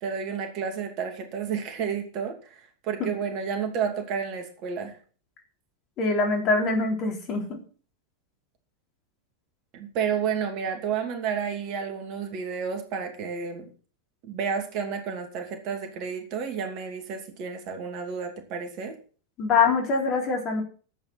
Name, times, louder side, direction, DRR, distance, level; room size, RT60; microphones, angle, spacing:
voice 1, 0.0-5.0 9.7-13.7 14.3-18.9, right 6 dB, 40° right, 5 dB, 2.6 m, -31 dB
voice 2, 6.0-7.6 19.4-20.6, left 4 dB, 35° left, 2 dB, 3.8 m, -24 dB
11.5 x 8.8 x 5.9 m, 0.40 s
figure-of-eight pair, 90°, 0 cm